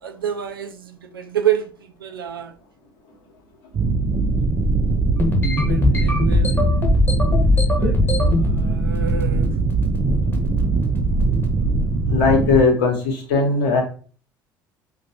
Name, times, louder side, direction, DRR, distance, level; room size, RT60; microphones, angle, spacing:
voice 1, 0.0-2.6 5.5-7.1 7.5-9.6, right 10 dB, 85° right, 0.4 m, -29 dB
sound 1, 3.7-12.6, right 3 dB, 35° right, 0.6 m, -21 dB
sound 2, 5.2-8.5 8.9-9.4 9.7-10.0 10.3-10.6 11.2-11.5, left 3 dB, 20° left, 1.1 m, -20 dB
voice 2, 12.1-13.8, left 4 dB, 65° left, 1.1 m, -18 dB
5.1 x 2.4 x 2.8 m
figure-of-eight pair, 60°, 12 cm